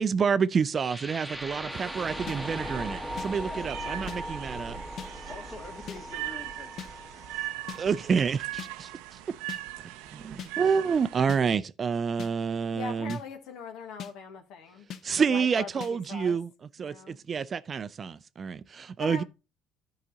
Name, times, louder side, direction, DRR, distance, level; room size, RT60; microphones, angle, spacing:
voice 1, 0.0-4.8 7.8-9.2 10.1-13.2 15.0-19.2, right 6 dB, 40° right, 0.4 m, -28 dB
sound 1, 0.8-8.8, equal, ahead, 1.1 m, -39 dB
voice 2, 1.4-1.9 3.4-4.0 4.2-4.4 4.8-7.5, left 4 dB, 40° left, 2.1 m, -48 dB
sound 2, 1.7-11.3, right 16 dB, 85° right, 0.5 m, -40 dB
sound 3, 2.3-2.4 3.2-3.3 4.1-4.2 5.0-5.1 5.9-6.0 6.8-6.9 7.7-7.8 8.6-8.7 9.5-9.6 10.4-10.5 11.3-11.4 12.2-12.3 13.1-13.2 14.0-14.1 14.9-15.0 15.8-15.9, left 8 dB, 60° left, 0.8 m, -39 dB
voice 3, 12.7-14.9 15.2-16.4 16.8-17.2 19.0-19.2, left 6 dB, 75° left, 1.4 m, -41 dB
11.0 x 4.9 x 4.0 m
supercardioid pair, 85°, 0 cm